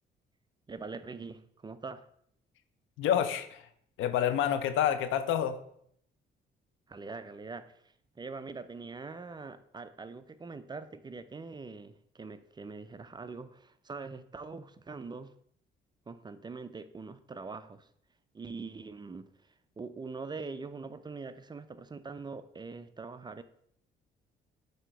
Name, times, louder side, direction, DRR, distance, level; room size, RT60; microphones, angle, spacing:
voice 1, 0.7-2.1 6.9-7.8 8.2-15.3 16.1-17.9 18.3-23.4, right 4 dB, 20° right, 12 dB, 0.4 m, -43 dB
voice 2, 3.0-3.6 4.0-5.6, left 9 dB, 85° left, 11 dB, 0.6 m, -28 dB
7.6 x 2.8 x 4.5 m, 0.68 s
cardioid pair, 90°, 20 cm